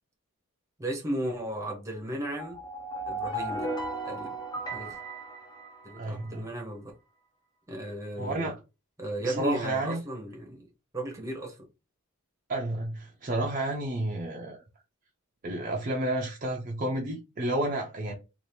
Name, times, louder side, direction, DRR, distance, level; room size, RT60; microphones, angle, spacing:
voice 1, 0.8-2.6 3.1-3.7 4.0-4.4 4.7-5.0 5.8-6.9 7.7-8.5 9.0-10.7 10.9-11.6, right 1 dB, 15° right, 0.8 m, -35 dB
sound 1, 2.3-6.3, right 1 dB, 15° left, 0.5 m, -36 dB
voice 2, 6.0-6.5 8.2-8.6 9.2-10.0 12.5-14.6 15.4-18.1, right 1 dB, 35° right, 0.5 m, -31 dB
2.8 x 2.5 x 3.2 m
head